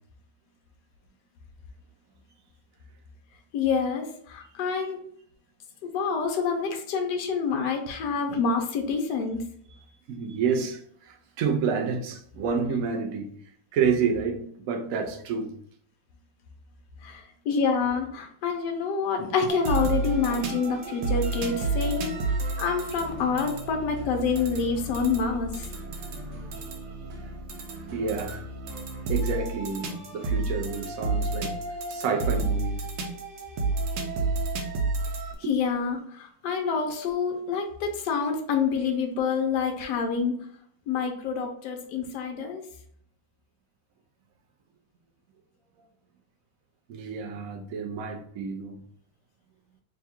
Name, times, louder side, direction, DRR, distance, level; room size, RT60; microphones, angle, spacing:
voice 1, 3.5-5.0 5.8-9.4 17.0-22.2 22.6-25.7 35.5-40.3 40.9-42.6, left 5 dB, 75° left, 1.3 m, -27 dB
voice 2, 10.1-13.3 13.7-15.6 27.9-28.5 29.1-31.5 31.9-32.9 46.9-48.8, right 6 dB, 65° right, 0.9 m, -29 dB
sound 1, 19.5-35.4, right 3 dB, 85° right, 1.4 m, -31 dB
3.6 x 2.3 x 4.2 m
omnidirectional pair, 1.9 m